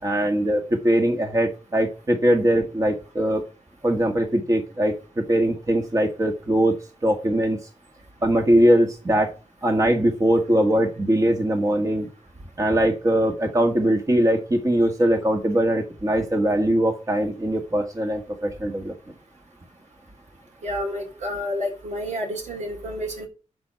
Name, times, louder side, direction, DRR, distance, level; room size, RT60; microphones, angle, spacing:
voice 1, 0.0-3.4 3.8-4.9 5.3-6.8 7.0-7.6 8.2-9.3 9.6-12.1 12.6-18.9, right 1 dB, 25° right, 3 dB, 1.8 m, -21 dB
voice 2, 20.6-23.3, left 1 dB, 65° right, 2 dB, 4.1 m, -29 dB
12.0 x 4.5 x 7.6 m, 0.34 s
wide cardioid pair, 110°, 13 cm